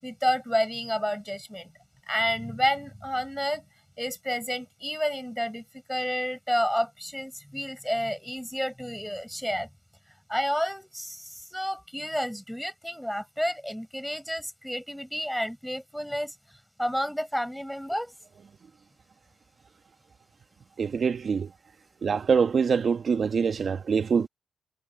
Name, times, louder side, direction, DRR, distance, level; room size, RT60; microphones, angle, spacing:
voice 1, 0.0-1.7 2.1-3.6 4.0-9.7 10.1-16.3 16.8-18.1, equal, ahead, 6.6 m, -30 dB
voice 2, 20.8-21.5 22.0-24.3, right 6 dB, 55° right, 1.6 m, -24 dB
supercardioid pair, 60°, 0 cm